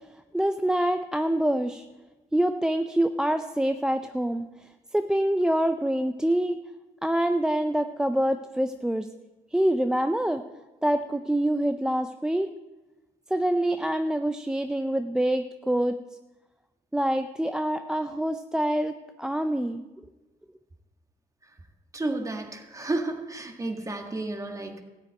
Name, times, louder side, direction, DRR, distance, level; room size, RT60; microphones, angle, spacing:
voice 1, 0.3-1.9 2.3-6.6 7.0-9.1 9.5-10.4 10.8-12.5 13.3-15.9 16.9-19.9, right 1 dB, 5° right, 8 dB, 0.4 m, -26 dB
voice 2, 21.9-24.8, right 2 dB, 20° right, 4 dB, 1.7 m, -32 dB
13.5 x 6.0 x 9.0 m, 1.1 s
cardioid pair, 110°, 17 cm